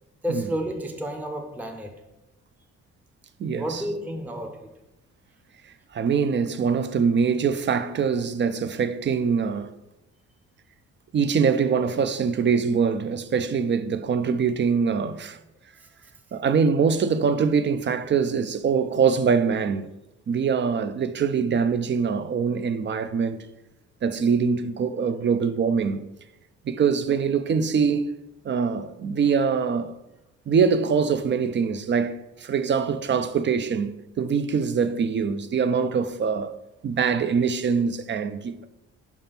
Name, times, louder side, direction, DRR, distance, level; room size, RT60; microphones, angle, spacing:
voice 1, 0.2-2.0 3.6-4.8 15.8-15.9, equal, 5° right, 0.7 m, -31 dB
voice 2, 3.4-3.8 5.9-9.7 11.1-15.4 16.3-19.9 20.3-23.4 24.0-26.0 26.6-28.1 28.4-30.0 30.5-33.9 34.2-36.5 36.8-38.7, right 6 dB, 40° right, 0.5 m, -23 dB
5.8 x 3.6 x 5.7 m
cardioid pair, 90°, 30 cm